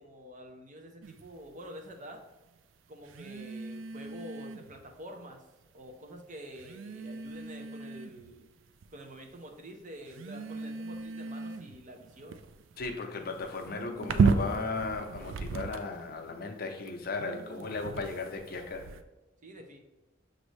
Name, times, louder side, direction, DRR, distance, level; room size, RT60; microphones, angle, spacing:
voice 1, 0.0-2.2 2.9-5.4 5.7-8.5 8.9-12.4 19.4-19.8, equal, 40° right, 4 dB, 0.6 m, -47 dB
sound 1, 1.0-1.3 3.1-4.8 5.8-5.9 6.6-8.3 8.8-9.3 10.1-16.1 16.9-19.0, right 4 dB, 85° right, 0.3 m, -34 dB
voice 2, 12.8-18.9, left 3 dB, 50° left, 4 dB, 0.6 m, -36 dB
6.2 x 2.6 x 3.2 m, 1.1 s
head